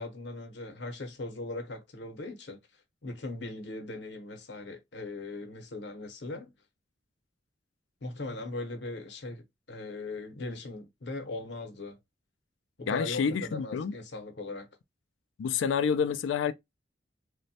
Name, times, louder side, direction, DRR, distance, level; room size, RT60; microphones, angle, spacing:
voice 1, 0.0-2.6 3.0-6.5 8.0-12.0 12.8-14.7, left 2 dB, 65° left, 0.7 m, -39 dB
voice 2, 12.9-13.9 15.4-16.5, left 6 dB, 90° left, 0.3 m, -28 dB
3.0 x 2.1 x 2.7 m
head